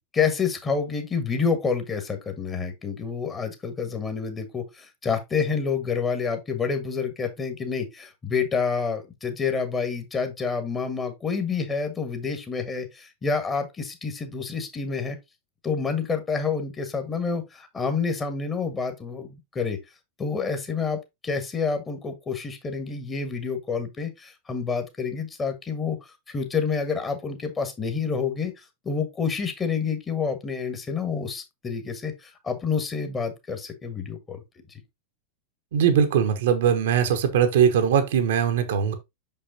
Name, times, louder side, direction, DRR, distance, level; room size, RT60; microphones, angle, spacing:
voice 1, 0.1-15.2 15.6-19.8 20.2-26.0 26.3-34.4, left 5 dB, 20° left, 1.5 m, -28 dB
voice 2, 35.7-38.9, right 8 dB, 55° right, 1.0 m, -21 dB
6.2 x 5.5 x 2.8 m
figure-of-eight pair, 90°, 0 cm